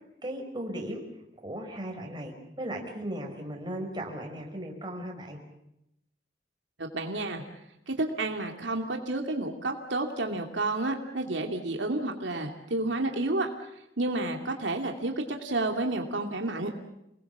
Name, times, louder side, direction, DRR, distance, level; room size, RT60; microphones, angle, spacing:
voice 1, 0.2-1.0 1.4-5.4, right 1 dB, 25° right, 2 dB, 5.4 m, -36 dB
voice 2, 6.8-7.4 7.9-13.5 14.0-16.7, right 2 dB, 85° right, 3 dB, 2.6 m, -30 dB
29.0 x 20.5 x 7.4 m, 0.84 s
head